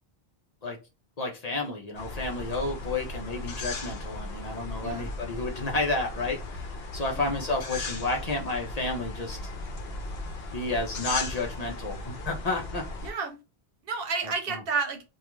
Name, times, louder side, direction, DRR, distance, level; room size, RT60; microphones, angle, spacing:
voice 1, 1.2-9.4 10.5-12.8 14.5-14.6, left 2 dB, 45° left, 0.7 m, -31 dB
sound 1, 1.9-13.1, left 2 dB, 75° left, 0.9 m, -37 dB
voice 2, 13.0-13.4 13.8-15.0, right 5 dB, 70° right, 0.8 m, -31 dB
2.4 x 2.3 x 3.0 m
omnidirectional pair, 1.0 m